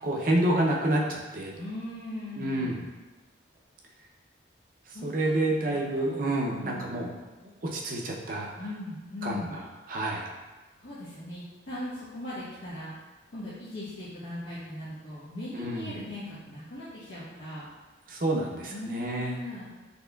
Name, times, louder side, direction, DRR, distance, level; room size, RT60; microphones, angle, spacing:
voice 1, 0.0-1.5 2.4-2.8 5.0-7.1 7.6-8.5 9.2-10.3 15.5-15.9 18.1-19.4, right 1 dB, 45° right, -1 dB, 0.5 m, -28 dB
voice 2, 1.5-2.7 4.9-5.3 5.7-7.2 8.6-9.5 10.8-12.9 13.3-17.7 18.7-19.7, left 1 dB, 75° left, -11 dB, 0.9 m, -39 dB
4.2 x 2.9 x 2.2 m, 1.2 s
head